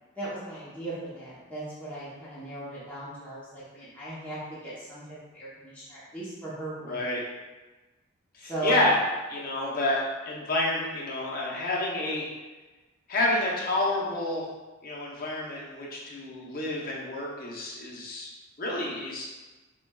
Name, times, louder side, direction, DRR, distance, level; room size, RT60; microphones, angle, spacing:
voice 1, 0.2-7.0 8.4-8.9, right 2 dB, 5° left, -11 dB, 0.8 m, -37 dB
voice 2, 6.8-7.2 8.3-9.0 9.3-12.3 13.1-14.5 14.8-18.3 18.6-19.3, left 2 dB, 45° left, -3 dB, 0.7 m, -29 dB
5.5 x 2.3 x 2.3 m, 1.2 s
head